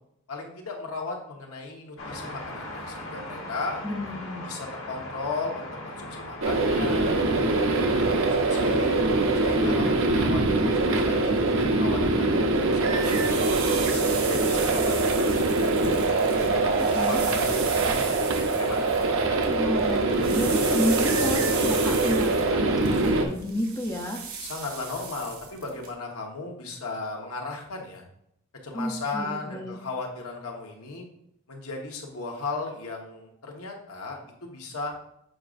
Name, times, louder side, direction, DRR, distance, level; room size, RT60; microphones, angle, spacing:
voice 1, 0.3-3.8 4.4-8.9 9.3-13.5 13.9-16.0 16.3-19.4 24.4-28.0 28.6-31.1 31.5-34.9, left 3 dB, 90° left, 1 dB, 1.2 m, -36 dB
sound 1, 2.0-9.9, left 1 dB, 65° left, 1.3 m, -39 dB
voice 2, 3.8-4.5 16.9-17.3 19.5-24.2 28.7-29.8, equal, 15° left, 1 dB, 0.5 m, -31 dB
sound 2, 6.4-23.2, right 2 dB, 65° right, 0.7 m, -23 dB
sound 3, 12.7-19.5 19.8-25.9, right 6 dB, 85° right, 1.6 m, -36 dB
7.7 x 5.0 x 2.5 m, 0.76 s
head